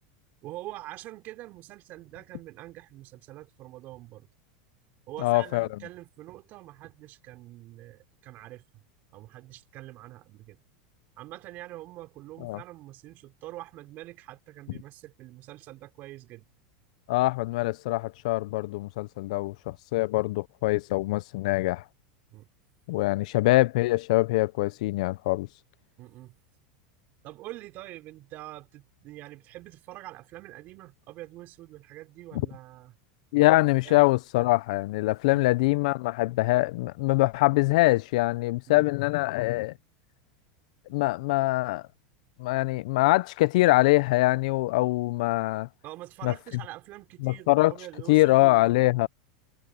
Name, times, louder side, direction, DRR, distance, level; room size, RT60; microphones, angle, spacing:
voice 1, 0.4-4.3 5.1-8.6 9.1-10.6 11.2-16.5 22.3-22.5 26.0-26.3 27.2-32.9 33.3-33.6 33.8-34.0 35.3-35.4 38.7-38.8 45.8-48.7, right 16 dB, 50° right, 4.8 m, -45 dB
voice 2, 5.2-5.7 12.4-12.6 17.1-21.8 22.9-25.5 33.3-39.7 40.9-41.8 42.4-45.7 46.2-46.3 47.2-47.7 48.1-49.1, left 20 dB, 70° left, 0.6 m, -23 dB
supercardioid pair, 115°, 4 cm